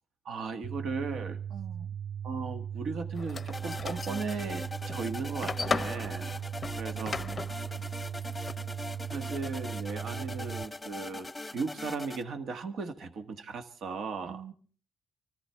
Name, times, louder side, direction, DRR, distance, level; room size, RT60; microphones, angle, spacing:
voice 1, 0.2-1.4 2.2-6.3 6.8-7.2 9.1-14.4, right 4 dB, 65° right, 7 dB, 1.4 m, -37 dB
sound 1, 0.6-10.6, right 9 dB, 35° right, 0.6 m, -38 dB
voice 2, 1.5-1.9 6.9-7.8 14.2-14.5, right 8 dB, 90° right, 4 dB, 1.5 m, -47 dB
sound 2, 3.2-8.5, left 4 dB, 35° left, 0.6 m, -37 dB
sound 3, 3.5-12.2, left 2 dB, 10° left, 1.0 m, -41 dB
25.5 x 14.0 x 3.4 m, 0.41 s
cardioid pair, 90°, 0 cm